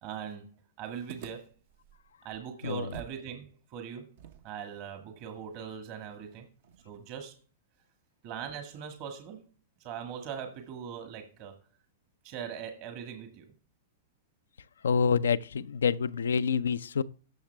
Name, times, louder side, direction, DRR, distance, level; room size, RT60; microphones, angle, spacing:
voice 1, 0.0-1.5 2.2-4.1 4.4-6.5 6.8-7.4 8.2-9.5 9.8-11.6 12.2-13.5, right 7 dB, 45° right, 1.6 m, -41 dB
sound 1, 1.1-3.3 3.5-3.6 4.2-7.3, right 8 dB, 60° right, 1.0 m, -51 dB
voice 2, 14.8-17.0, left 6 dB, 80° left, 0.4 m, -27 dB
13.0 x 6.4 x 3.4 m
hypercardioid pair, 110°, 0 cm